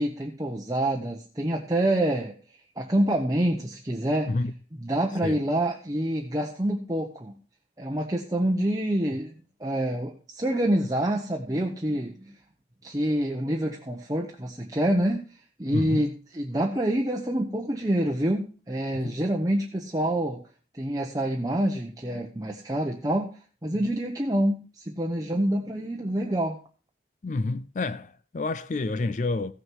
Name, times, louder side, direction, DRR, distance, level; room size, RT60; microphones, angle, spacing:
voice 1, 0.0-2.3 2.8-4.3 4.8-7.3 7.8-9.3 9.6-12.3 12.8-15.2 15.6-20.4 20.7-23.3 23.6-26.6, right 1 dB, 20° right, 0.9 m, -27 dB
voice 2, 15.7-16.1 18.9-19.1 23.8-23.9 27.2-29.5, left 3 dB, 45° left, 0.4 m, -29 dB
15.5 x 6.5 x 4.6 m
head